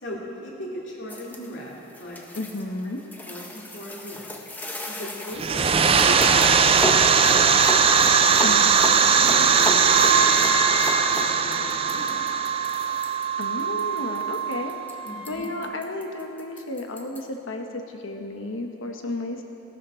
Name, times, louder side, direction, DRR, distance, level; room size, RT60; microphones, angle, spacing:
voice 1, 0.0-2.2 3.2-4.4 4.8-7.5 8.2-8.5 9.1-12.1 15.0-15.5, equal, 60° left, -5 dB, 2.5 m, -38 dB
sound 1, 1.1-17.2, left 1 dB, 10° left, 0.7 m, -34 dB
voice 2, 2.3-3.0 8.4-8.7 13.4-14.8 15.3-19.4, left 2 dB, 75° left, 4 dB, 1.2 m, -32 dB
sound 2, 5.4-13.9, right 6 dB, 30° right, 0.4 m, -19 dB
Wind instrument woodwind instrument, 9.6-15.5, right 6 dB, 90° right, 3.2 m, -29 dB
16.5 x 12.0 x 4.4 m, 2.9 s
head